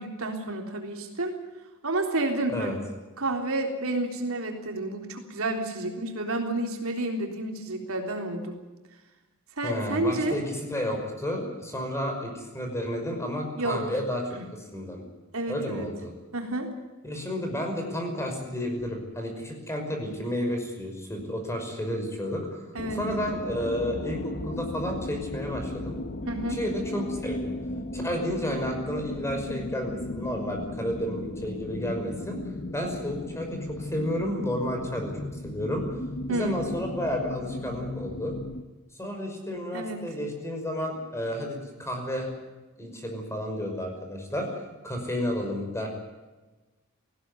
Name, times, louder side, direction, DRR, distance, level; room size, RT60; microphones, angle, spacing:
voice 1, 0.0-1.3 1.8-2.7 3.2-8.6 9.6-10.4 13.6-13.8 14.3-14.4 15.3-15.9 16.3-16.7 22.8-23.1 26.3-26.6 36.3-36.6 39.7-40.0, right 2 dB, 65° right, 3 dB, 3.6 m, -30 dB
voice 2, 9.6-14.2 14.5-15.0 15.5-16.1 17.0-26.0 26.5-27.5 27.9-32.4 32.7-35.1 35.4-35.9 36.3-38.4 39.0-42.3 42.8-44.5 44.8-45.9, equal, 15° left, 3 dB, 5.8 m, -31 dB
sound 1, 22.8-38.6, left 1 dB, 45° left, 1.3 m, -36 dB
19.5 x 17.0 x 9.7 m, 1.2 s
head